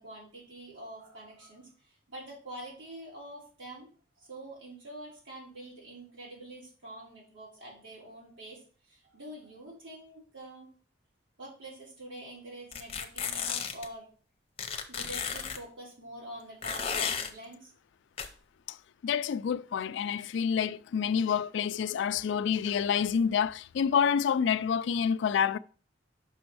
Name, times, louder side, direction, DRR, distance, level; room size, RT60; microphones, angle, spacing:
voice 1, 0.0-3.9 4.2-10.7 11.4-14.1 14.9-17.7, right 1 dB, 90° right, 3.7 m, -46 dB
sound 1, 12.7-13.9 14.6-15.6 16.6-17.3 18.2-18.3, left 7 dB, 30° left, 0.7 m, -33 dB
voice 2, 19.0-25.6, left 7 dB, 70° left, 0.3 m, -28 dB
6.1 x 5.1 x 4.7 m
head